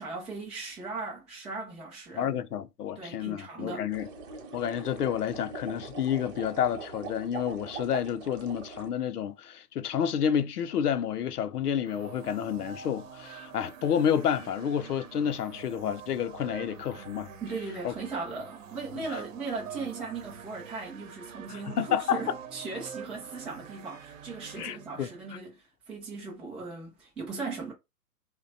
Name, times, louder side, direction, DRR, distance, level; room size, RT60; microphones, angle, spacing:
voice 1, 0.0-2.3 3.0-3.9 17.4-27.7, right 4 dB, ahead, 0.4 m, -38 dB
voice 2, 2.2-4.1 4.5-17.3 17.8-17.9 19.1-19.2 21.5-22.2 24.6-25.1, left 9 dB, 75° left, 0.7 m, -30 dB
sound 1, 3.9-8.9, right 5 dB, 25° right, 0.8 m, -42 dB
sound 2, 11.9-25.4, right 7 dB, 55° right, 0.9 m, -46 dB
3.2 x 2.2 x 3.9 m
hypercardioid pair, 120°, 47 cm